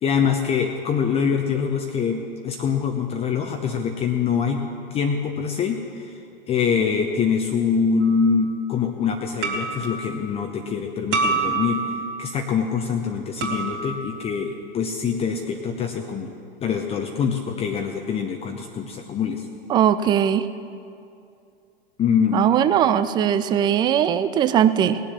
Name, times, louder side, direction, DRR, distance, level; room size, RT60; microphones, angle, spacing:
voice 1, 0.0-4.6 4.9-6.2 6.5-16.3 16.6-19.5 22.0-22.4, left 6 dB, 20° left, 3 dB, 0.8 m, -24 dB
sound 1, 8.0-8.3 9.4-10.0 11.1-12.0 13.4-14.0, right 4 dB, 40° right, 2.4 m, -26 dB
voice 2, 19.7-20.5 22.3-25.0, right 9 dB, 15° right, 13 dB, 0.4 m, -19 dB
19.0 x 7.3 x 7.0 m, 2.5 s
figure-of-eight pair, 95°, 30 cm